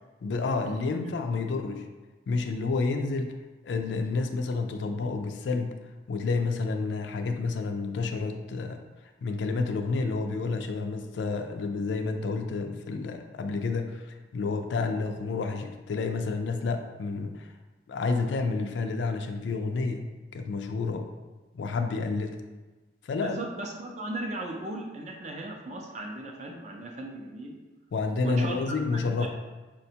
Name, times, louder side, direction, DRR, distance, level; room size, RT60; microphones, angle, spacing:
voice 1, 0.2-1.8 2.3-3.4 3.6-5.8 6.1-8.8 9.2-17.5 17.9-20.1 20.3-21.1 21.5-22.4 23.0-23.4 27.9-29.3, left 4 dB, 80° left, 5 dB, 0.4 m, -30 dB
voice 2, 23.2-27.6 28.2-29.3, right 2 dB, 40° right, 1 dB, 0.5 m, -36 dB
4.9 x 2.2 x 2.7 m, 1.2 s
head